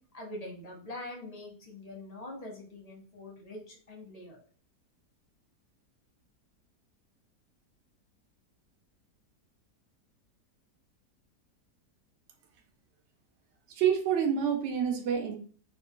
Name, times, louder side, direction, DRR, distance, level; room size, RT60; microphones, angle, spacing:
voice 1, 0.1-4.4, left 1 dB, 40° left, -1 dB, 0.6 m, -44 dB
voice 2, 13.7-15.4, right 8 dB, 90° right, 5 dB, 0.6 m, -27 dB
3.1 x 2.4 x 3.6 m, 0.44 s
omnidirectional pair, 1.8 m